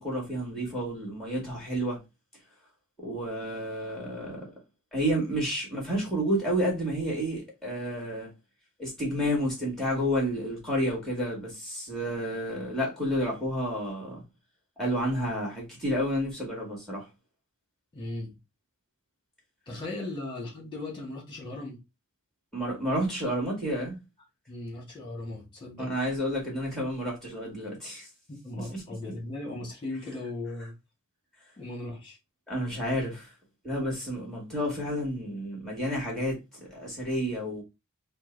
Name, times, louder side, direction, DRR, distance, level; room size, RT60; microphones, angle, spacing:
voice 1, 0.0-2.0 3.0-4.5 4.9-8.3 8.8-14.2 14.8-17.0 22.5-24.0 25.8-28.1 28.6-28.8 32.5-33.3 33.6-36.4 36.7-37.6, equal, ahead, 2.0 m, -30 dB
voice 2, 17.9-18.4 19.7-21.8 24.5-25.9 28.3-30.7 31.6-32.2, left 2 dB, 20° left, 1.8 m, -37 dB
4.4 x 2.3 x 4.0 m
head